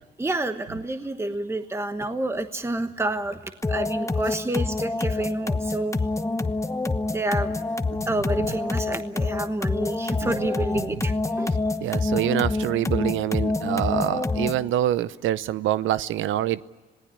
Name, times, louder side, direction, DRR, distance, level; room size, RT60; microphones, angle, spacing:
voice 1, 0.2-6.0 7.1-7.6 8.1-11.5, right 2 dB, 15° right, 8 dB, 1.1 m, -29 dB
sound 1, 3.6-14.7, left 3 dB, 15° left, 1.1 m, -27 dB
voice 2, 11.8-16.6, right 12 dB, 85° right, 17 dB, 0.7 m, -25 dB
26.5 x 18.5 x 9.9 m, 1.3 s
cardioid pair, 90°, 20 cm